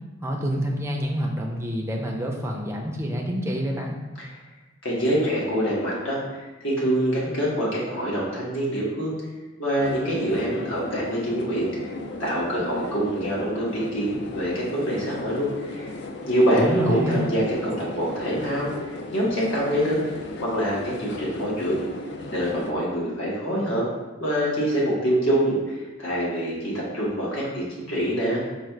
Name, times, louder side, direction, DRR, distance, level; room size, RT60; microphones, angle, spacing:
voice 1, 0.2-4.0 16.5-17.4, equal, 15° right, 0 dB, 0.5 m, -27 dB
voice 2, 4.8-9.2 9.6-11.9 12.2-15.9 16.3-18.7 19.1-20.0 20.4-21.8 22.3-23.8 24.2-28.4, equal, 75° left, -5 dB, 1.4 m, -25 dB
sound 1, 9.8-22.7, left 2 dB, 55° left, 0.4 m, -36 dB
4.8 x 2.4 x 4.5 m, 1.2 s
head